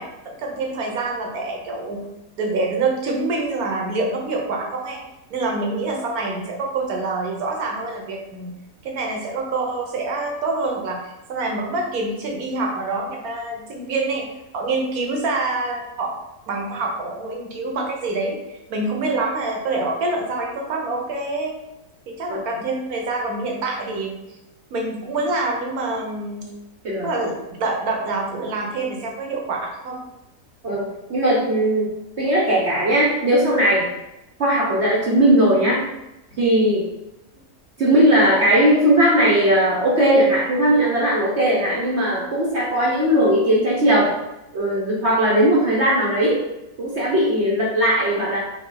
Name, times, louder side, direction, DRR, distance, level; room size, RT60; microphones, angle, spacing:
voice 1, 0.0-2.0 2.4-5.0 5.3-8.6 8.8-14.3 14.5-16.1 16.5-21.5 22.1-24.2 24.7-26.4 27.0-30.0, right 3 dB, 70° right, 0 dB, 1.3 m, -26 dB
voice 2, 30.6-31.9 32.2-33.9 34.4-35.8 36.4-36.8 37.8-44.1 44.5-46.4 46.8-48.4, right 1 dB, 50° right, -5 dB, 1.0 m, -18 dB
4.8 x 2.3 x 3.9 m, 0.94 s
omnidirectional pair, 1.7 m